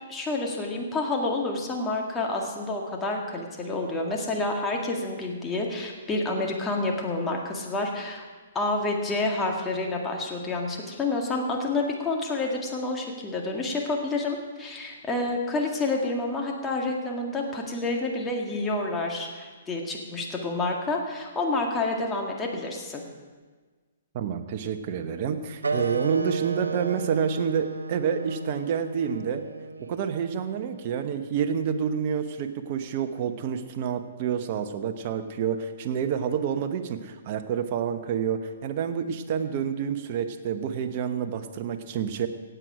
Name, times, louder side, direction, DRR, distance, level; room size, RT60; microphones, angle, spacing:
voice 1, 0.1-8.3 8.5-23.0, left 2 dB, 15° left, 0 dB, 2.0 m, -29 dB
voice 2, 24.1-29.4 29.8-42.3, right 7 dB, 45° right, 8 dB, 1.0 m, -28 dB
sound 1, 25.6-30.7, right 4 dB, 85° right, 0.7 m, -34 dB
17.0 x 8.0 x 5.0 m, 1.4 s
figure-of-eight pair, 125°, 0 cm